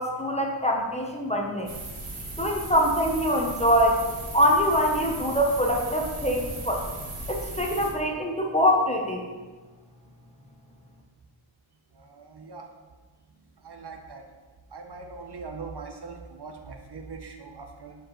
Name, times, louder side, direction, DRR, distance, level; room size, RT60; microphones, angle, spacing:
voice 1, 0.0-1.7 2.4-4.0 4.3-6.8 7.3-9.2, equal, 15° left, 0 dB, 0.7 m, -24 dB
sound 1, 1.7-7.9, right 2 dB, 85° right, 1.3 m, -37 dB
voice 2, 12.0-12.6 13.6-14.2 14.7-18.0, right 4 dB, 55° right, 3 dB, 0.8 m, -41 dB
7.3 x 4.6 x 3.0 m, 1.3 s
wide cardioid pair, 80°, 48 cm